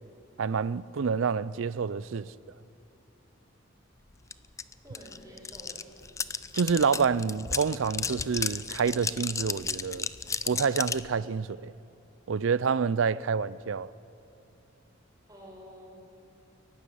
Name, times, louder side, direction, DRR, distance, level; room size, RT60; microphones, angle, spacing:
voice 1, 0.4-2.3 6.5-10.1 10.4-11.7 12.3-13.9, right 5 dB, 70° right, 0.5 m, -28 dB
sound 1, 4.3-4.4 4.6-11.1, left 5 dB, 15° left, 0.4 m, -33 dB
voice 2, 4.8-6.2 15.3-16.0, equal, 20° right, 4.7 m, -49 dB
22.5 x 11.5 x 9.9 m
head